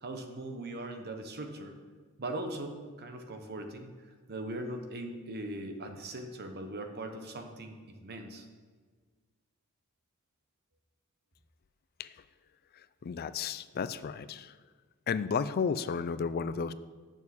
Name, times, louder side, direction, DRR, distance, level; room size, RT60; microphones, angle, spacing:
voice 1, 0.0-1.7 2.2-3.9 4.3-8.5, right 1 dB, 45° right, 5 dB, 1.0 m, -40 dB
voice 2, 13.0-14.5 15.1-16.7, left 6 dB, 45° left, 15 dB, 0.3 m, -32 dB
6.9 x 6.4 x 7.0 m, 1.5 s
head